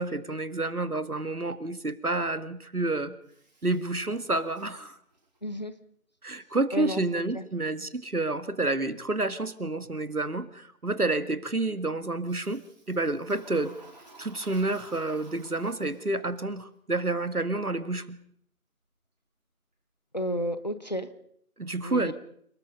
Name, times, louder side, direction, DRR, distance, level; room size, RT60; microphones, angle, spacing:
voice 1, 0.0-3.1 3.6-5.0 6.2-12.6 12.9-13.7 14.2-18.2 21.6-22.1, right 2 dB, 85° right, 13 dB, 2.1 m, -29 dB
Toilet flush, 3.2-5.5 12.2-16.4, right 2 dB, 30° right, 4.6 m, -54 dB
voice 2, 5.4-5.7 6.7-7.0 7.3-7.4 20.1-21.1 21.8-22.1, equal, 30° left, 12 dB, 1.2 m, -31 dB
30.0 x 19.5 x 5.4 m, 0.67 s
figure-of-eight pair, 170°, 43 cm